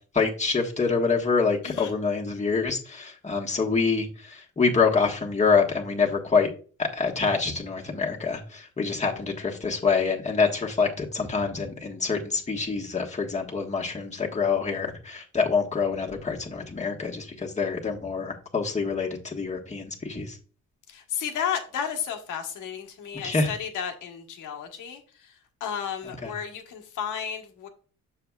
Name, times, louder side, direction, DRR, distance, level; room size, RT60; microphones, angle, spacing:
voice 1, 0.1-6.5 6.8-20.4 23.1-23.5 26.0-26.3, left 4 dB, 25° left, 0 dB, 1.4 m, -26 dB
voice 2, 20.9-25.3 25.6-27.7, left 8 dB, 85° left, 4 dB, 1.4 m, -33 dB
7.0 x 6.7 x 2.4 m, 0.39 s
cardioid pair, 90°, 30 cm